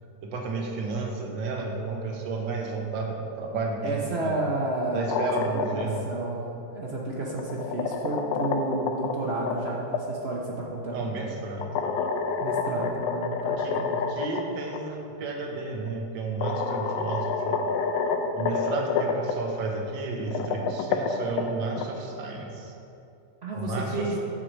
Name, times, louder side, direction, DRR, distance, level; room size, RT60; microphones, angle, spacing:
voice 1, 0.2-4.3 4.9-6.0 10.9-11.7 13.6-13.8 14.1-17.6 18.4-22.7 23.5-24.1, right 3 dB, 80° right, 1 dB, 1.7 m, -32 dB
voice 2, 3.8-11.1 12.4-14.1 18.8-19.0 23.4-24.2, right 2 dB, 55° right, -2 dB, 0.7 m, -31 dB
sound 1, 4.9-6.0 7.2-10.0 11.6-14.4 14.7-14.8 15.9-16.0 16.4-19.3 20.2-21.9, left 5 dB, 80° left, 1.3 m, -28 dB
7.8 x 4.6 x 6.4 m, 2.6 s
omnidirectional pair, 2.0 m